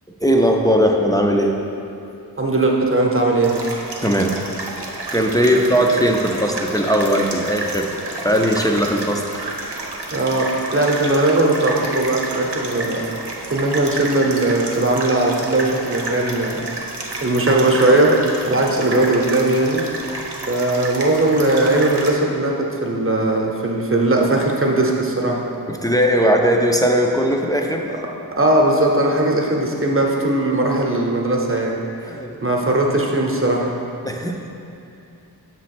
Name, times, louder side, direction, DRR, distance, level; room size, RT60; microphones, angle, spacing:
voice 1, 0.2-1.5 4.0-4.4 5.1-8.0 8.2-9.5 25.7-27.9 32.1-32.3 34.0-34.4, equal, 10° left, 1 dB, 0.5 m, -18 dB
voice 2, 2.4-3.6 10.1-13.1 13.5-16.7 17.2-18.1 18.4-19.8 20.5-25.4 28.4-31.8 32.4-33.7, right 2 dB, 35° right, -1 dB, 0.9 m, -19 dB
sound 1, 3.4-22.1, right 2 dB, 85° right, 0.8 m, -30 dB
6.8 x 3.1 x 5.9 m, 2.6 s
wide cardioid pair, 50°, 39 cm